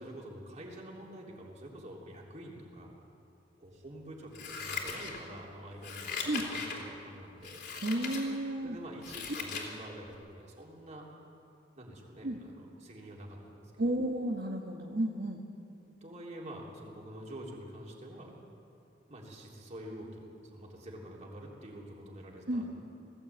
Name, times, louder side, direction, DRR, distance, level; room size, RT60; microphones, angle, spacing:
voice 1, 0.0-3.0 3.6-7.6 8.6-11.0 11.8-14.0 15.7-18.4 19.1-22.8, right 1 dB, 40° right, -2 dB, 3.6 m, -47 dB
Scissors, 4.3-5.4 5.8-6.8 7.4-8.2 8.7-9.7 10.1-10.2, left 5 dB, 65° left, 3.2 m, -39 dB
voice 2, 7.8-8.8 12.2-12.4 13.8-15.4 22.5-22.7, right 1 dB, 55° right, -1 dB, 1.4 m, -32 dB
19.5 x 15.5 x 8.7 m, 2.6 s
head